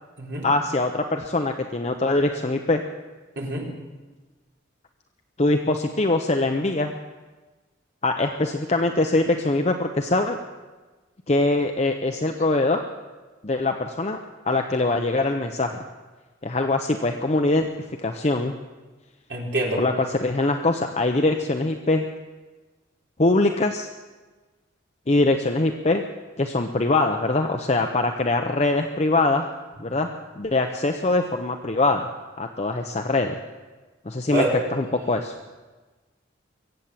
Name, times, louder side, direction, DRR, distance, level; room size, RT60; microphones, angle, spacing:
voice 1, 0.4-2.8 5.4-7.0 8.0-10.4 11.3-12.8 13.4-14.2 14.4-15.8 16.4-17.7 18.0-18.5 19.8-22.1 23.2-23.9 25.1-26.0 26.4-29.5 29.8-30.1 30.4-32.1 32.4-33.4 34.1-35.3, left 2 dB, 35° left, 4 dB, 0.6 m, -23 dB
voice 2, 19.3-19.8 34.3-34.5, right 1 dB, 60° right, -3 dB, 3.9 m, -25 dB
22.5 x 8.3 x 7.3 m, 1.3 s
head